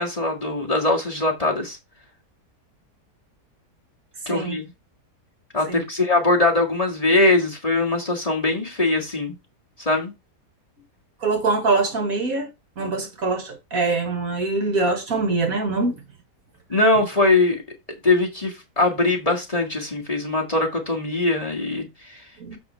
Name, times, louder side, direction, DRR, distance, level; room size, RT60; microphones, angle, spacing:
voice 1, 0.0-1.8 4.3-4.6 5.5-9.4 9.8-10.1 16.7-17.6 18.0-22.2, left 2 dB, 20° left, 1.8 m, -21 dB
voice 2, 11.2-12.5 12.8-16.0 22.4-22.6, right 3 dB, 55° right, 1.9 m, -23 dB
7.3 x 5.4 x 4.4 m
omnidirectional pair, 1.8 m